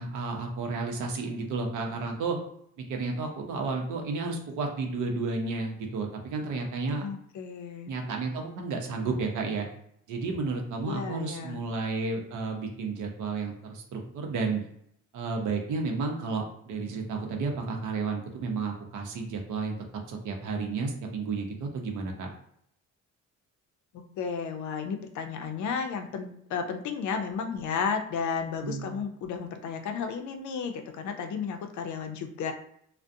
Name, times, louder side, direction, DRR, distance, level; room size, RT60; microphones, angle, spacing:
voice 1, 0.0-2.4 2.8-7.0 7.9-9.7 10.1-14.6 15.1-19.8 20.1-22.3 28.6-28.9, right 4 dB, 80° right, 2 dB, 0.7 m, -32 dB
voice 2, 7.0-7.9 10.9-11.6 23.9-32.5, left 6 dB, 70° left, 6 dB, 0.5 m, -33 dB
2.4 x 2.1 x 2.6 m, 0.70 s
cardioid pair, 90°, 30 cm